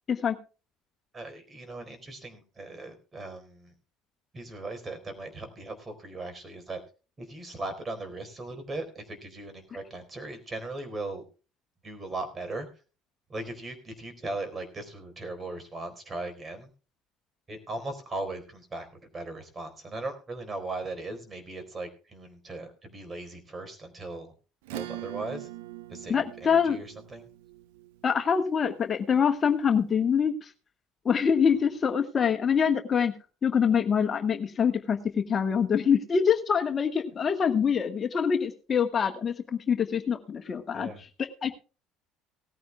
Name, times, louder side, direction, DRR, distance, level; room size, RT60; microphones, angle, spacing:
voice 1, 1.1-3.7 4.3-6.8 7.2-11.2 11.8-12.7 13.3-16.7 17.5-18.9 19.1-24.3 24.7-25.5 25.9-27.3 40.7-41.0, right 2 dB, 30° right, 8 dB, 4.1 m, -38 dB
Acoustic guitar / Strum, 24.6-29.6, right 17 dB, 80° right, 0.7 m, -43 dB
voice 2, 26.1-26.8 28.0-30.5 31.0-33.1 33.4-40.9 41.2-41.5, left 7 dB, 40° left, 7 dB, 1.4 m, -25 dB
18.0 x 14.5 x 2.2 m, 0.34 s
hypercardioid pair, 65°, 0 cm